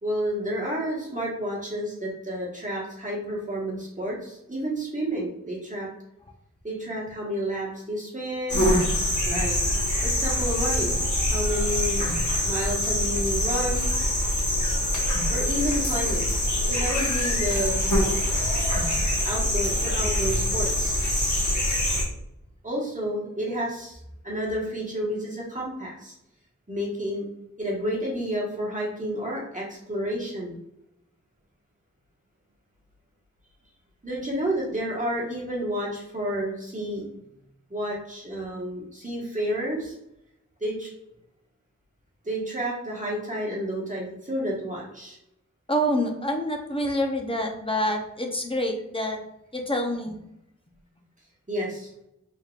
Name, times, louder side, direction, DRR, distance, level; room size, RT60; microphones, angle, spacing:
voice 1, 0.0-5.9 6.6-8.7 9.2-9.6 10.0-12.1 12.4-13.9 15.0-16.3 16.7-17.8 19.2-21.3 22.6-26.1 26.7-27.3 27.6-30.6 34.0-37.1 37.7-39.9 40.6-40.9 42.2-45.2 51.5-51.9, equal, 25° right, -4 dB, 1.4 m, -30 dB
sound 1, 8.5-22.0, left 1 dB, 75° left, 1.3 m, -24 dB
voice 2, 45.7-49.2 49.5-50.2, equal, 20° left, 3 dB, 0.7 m, -27 dB
4.4 x 3.5 x 2.4 m, 0.83 s
wide cardioid pair, 70°, 30 cm